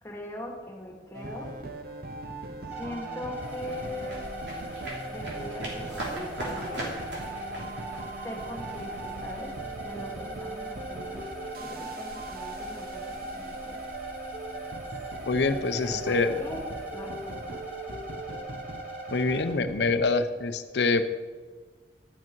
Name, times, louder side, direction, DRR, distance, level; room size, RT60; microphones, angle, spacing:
voice 1, 0.0-1.5 2.7-4.2 5.1-7.0 8.2-11.2 11.6-13.8 15.7-16.6 16.9-17.5, left 1 dB, 15° left, -1 dB, 1.9 m, -41 dB
sound 1, 1.1-20.0, right 2 dB, 55° right, 0.9 m, -40 dB
sound 2, 2.7-19.5, right 1 dB, 10° right, 2.8 m, -41 dB
sound 3, 3.3-18.4, right 1 dB, 80° right, 3.1 m, -43 dB
voice 2, 15.3-16.3 19.1-21.0, left 3 dB, 70° left, 10 dB, 0.6 m, -25 dB
12.0 x 8.5 x 4.6 m, 1.4 s
head